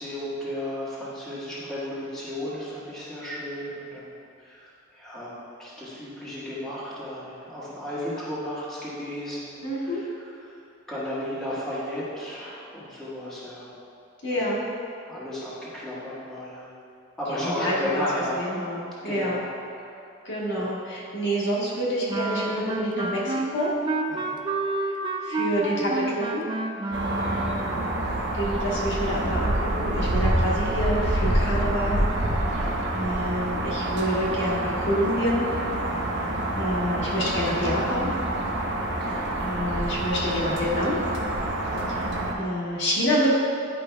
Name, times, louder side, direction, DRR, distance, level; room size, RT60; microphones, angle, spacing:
voice 1, 0.0-4.1 4.4-10.6 10.9-13.7 14.3-14.5 15.1-16.7 17.2-18.4 19.0-19.5 19.8-19.9 20.5-20.7 24.1-24.4 27.0-27.5 32.5-32.7 35.9-36.3 38.8-39.5 41.7-42.0, left 1 dB, 5° left, -11 dB, 1.4 m, -34 dB
voice 2, 9.6-10.0 14.2-14.7 17.3-18.0 18.4-19.4 20.2-23.7 25.2-26.4 28.3-32.0 32.9-35.5 36.6-38.1 39.4-41.0 41.9-42.0 42.4-43.3, equal, 60° left, -7 dB, 1.4 m, -27 dB
Wind instrument woodwind instrument, 22.1-27.8, right 2 dB, 25° right, 0.3 m, -29 dB
sound 1, 26.9-42.3, right 1 dB, 60° right, 0.8 m, -27 dB
10.5 x 5.1 x 2.3 m, 2.7 s
head